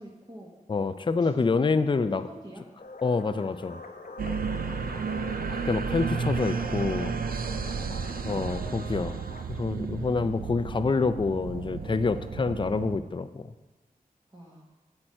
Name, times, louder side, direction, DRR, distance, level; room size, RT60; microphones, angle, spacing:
voice 1, 0.0-0.5 1.1-1.5 2.1-2.6 4.5-5.4 7.4-8.1 9.9-10.2 14.3-14.6, right 1 dB, 30° right, -4 dB, 1.3 m, -47 dB
voice 2, 0.7-2.3 3.0-3.8 5.7-7.1 8.2-9.2 9.5-13.5, left 4 dB, 35° left, 11 dB, 0.4 m, -27 dB
sound 1, 2.8-9.4, left 2 dB, 85° left, 0.8 m, -43 dB
sound 2, 4.2-13.0, right 5 dB, 75° right, 0.4 m, -33 dB
9.1 x 7.7 x 4.3 m, 1.3 s
wide cardioid pair, 80°, 15 cm